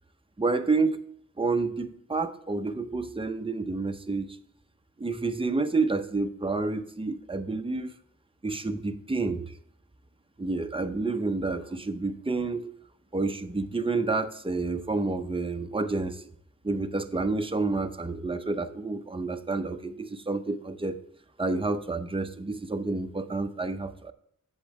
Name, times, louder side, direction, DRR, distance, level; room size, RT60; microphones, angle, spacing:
voice 1, 0.4-1.0 1.4-4.3 5.0-7.9 8.4-9.5 10.4-12.7 13.1-16.2 16.6-21.0 21.4-24.1, right 3 dB, 15° right, 8 dB, 0.7 m, -29 dB
8.3 x 7.3 x 3.2 m, 0.68 s
wide cardioid pair, 40°, 32 cm